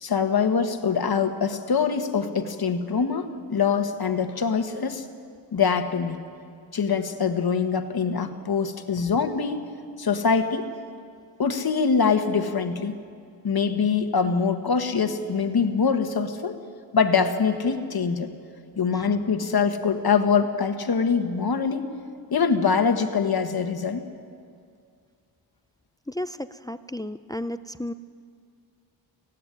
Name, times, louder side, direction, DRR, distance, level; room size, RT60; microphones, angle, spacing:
voice 1, 0.0-5.0 5.5-6.2 6.7-9.6 10.0-10.7 11.4-12.9 13.4-16.6 16.9-18.3 18.8-21.9 22.3-24.0, left 5 dB, 55° left, 7 dB, 1.5 m, -24 dB
voice 2, 26.1-27.9, left 1 dB, 10° left, 13 dB, 0.4 m, -33 dB
16.5 x 16.0 x 9.9 m, 2.2 s
wide cardioid pair, 105°, 45 cm